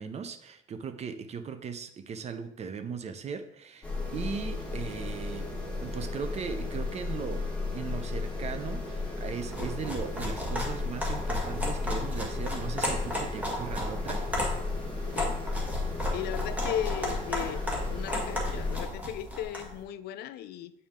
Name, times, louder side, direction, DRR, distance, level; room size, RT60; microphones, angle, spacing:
voice 1, 0.0-3.9 4.1-5.5 5.8-7.5 7.7-14.2, right 6 dB, 40° right, 9 dB, 0.6 m, -38 dB
sound 1, 3.8-18.9, left 3 dB, 5° left, 1.6 m, -34 dB
sound 2, 9.4-19.7, left 1 dB, 10° right, 1.6 m, -34 dB
voice 2, 16.1-17.6 17.9-20.7, left 11 dB, 70° left, 14 dB, 0.4 m, -36 dB
7.3 x 4.2 x 3.6 m, 0.77 s
cardioid pair, 110°, 17 cm